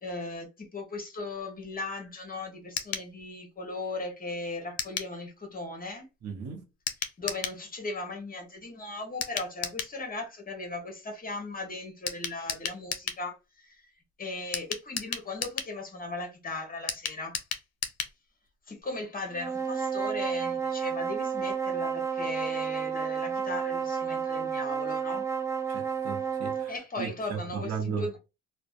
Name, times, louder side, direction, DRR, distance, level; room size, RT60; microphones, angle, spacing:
voice 1, 0.0-6.1 7.2-13.8 14.2-17.4 18.7-25.2 26.7-28.2, left 2 dB, 30° left, 0.9 m, -37 dB
sound 1, 2.8-3.1 4.8-5.1 6.9-7.6 9.2-10.0 12.1-13.2 14.5-15.7 16.9-18.2 18.5-18.6 18.8-18.9, left 7 dB, 60° left, 0.6 m, -34 dB
voice 2, 6.2-6.6 25.7-28.1, right 6 dB, 55° right, 0.8 m, -36 dB
sound 2, 19.3-26.8, right 6 dB, 10° right, 0.4 m, -31 dB
2.5 x 2.1 x 2.4 m
cardioid pair, 90°, 30 cm